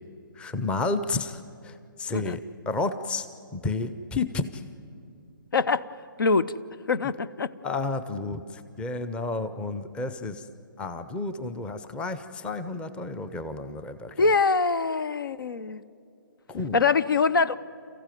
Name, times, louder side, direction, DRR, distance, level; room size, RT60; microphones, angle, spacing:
voice 1, 0.4-3.3 3.5-4.7 7.6-10.5 10.8-14.3 16.5-16.8, left 3 dB, 10° left, 12 dB, 0.7 m, -31 dB
voice 2, 5.5-5.9 6.2-6.5 6.9-7.5 14.2-15.8 16.7-17.6, left 4 dB, 70° left, 16 dB, 0.7 m, -23 dB
28.5 x 15.0 x 9.2 m, 2.5 s
figure-of-eight pair, 140°, 12 cm